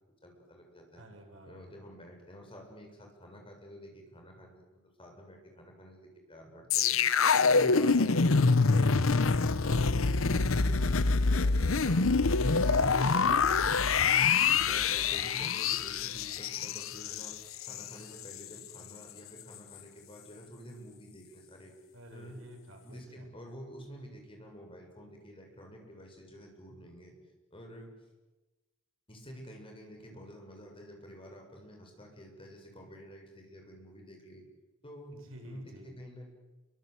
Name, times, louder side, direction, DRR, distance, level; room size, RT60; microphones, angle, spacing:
voice 1, 0.2-1.1 1.4-8.9 9.4-12.1 12.5-13.5 14.4-17.4 17.7-21.7 22.1-22.4 22.8-27.1 27.5-27.9 29.1-34.4 34.8-35.1 35.4-36.3, equal, 25° left, 2 dB, 7.1 m, -49 dB
voice 2, 1.0-1.7 8.0-9.1 21.9-23.3 35.1-35.9, equal, 90° right, 3 dB, 6.7 m, -51 dB
sound 1, 6.7-17.9 18.2-18.4, left 4 dB, 90° left, 0.9 m, -26 dB
29.0 x 24.0 x 8.2 m, 1.1 s
head